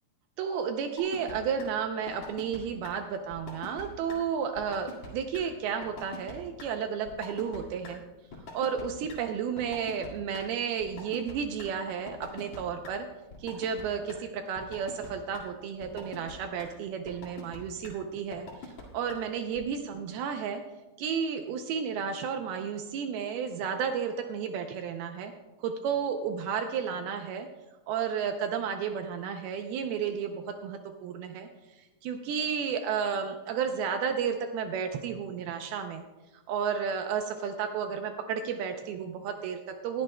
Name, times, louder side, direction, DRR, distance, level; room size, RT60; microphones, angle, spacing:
voice 1, 0.4-8.0 8.5-13.1 13.4-20.6 21.0-25.3 25.6-27.5 27.9-31.5 31.8-36.0 36.5-40.0, right 7 dB, 80° right, 6 dB, 2.3 m, -32 dB
sound 1, 1.0-1.3 1.6-1.7 2.1-2.6 2.8-2.9 3.3-3.8 4.1-4.2 4.6-5.1 5.3-5.4 5.8-6.3 6.6-6.7 7.1-7.6 7.8-7.9 8.3-8.8 9.1-9.2 9.6-10.4 10.8-11.7 12.1-12.6 12.8-12.9 13.3-13.8 14.1-14.2 14.6-15.1 15.3-15.4 15.8-16.3 16.6-16.7 17.1-17.6 17.8-17.9 18.3-18.8 19.1-19.2 19.6-19.7, left 4 dB, 50° left, 2.8 m, -43 dB
20.0 x 11.5 x 2.2 m, 1.1 s
omnidirectional pair, 4.9 m